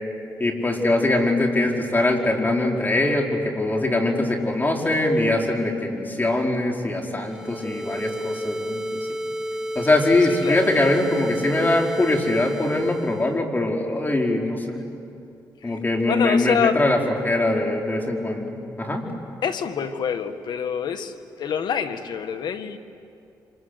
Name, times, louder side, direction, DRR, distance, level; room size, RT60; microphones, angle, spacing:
voice 1, 0.4-9.1 9.7-14.8 15.6-19.0, left 2 dB, 25° left, 1 dB, 4.7 m, -22 dB
sound 1, 7.2-13.4, equal, 10° right, 1.9 m, -31 dB
voice 2, 10.3-10.7 15.6-15.8 16.1-16.8 19.4-22.8, left 7 dB, 75° left, 8 dB, 1.7 m, -26 dB
27.5 x 26.5 x 8.1 m, 2.6 s
cardioid pair, 75°, 8 cm